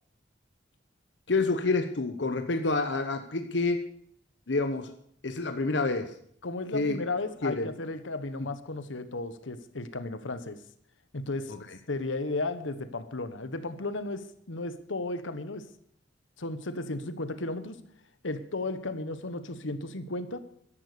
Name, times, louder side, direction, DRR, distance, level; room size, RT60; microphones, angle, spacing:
voice 1, 1.3-3.9 4.5-4.9 5.2-6.1 6.7-7.0 7.4-7.7 11.5-11.8, left 3 dB, 70° left, 8 dB, 1.0 m, -28 dB
voice 2, 6.4-10.6 11.1-11.5 11.9-15.7 16.4-17.8 18.2-20.4, left 2 dB, 90° left, 12 dB, 1.2 m, -34 dB
15.0 x 11.0 x 6.8 m, 0.66 s
head